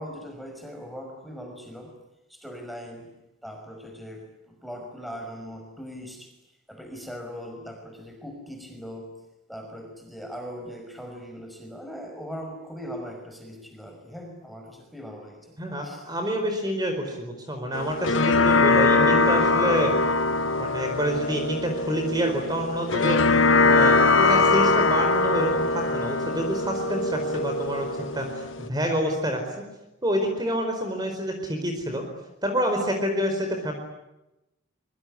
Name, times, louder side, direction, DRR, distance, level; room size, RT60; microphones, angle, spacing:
voice 1, 0.0-2.0 2.3-3.1 3.4-6.4 6.7-9.2 9.5-16.1, equal, ahead, 4 dB, 5.4 m, -40 dB
voice 2, 15.6-19.9 20.6-23.2 23.6-27.9 28.1-29.6 30.0-32.1 32.4-33.7, equal, 20° right, 4 dB, 4.6 m, -27 dB
sound 1, 17.7-28.7, left 3 dB, 70° left, 1.3 m, -22 dB
25.0 x 24.0 x 10.0 m, 0.93 s
head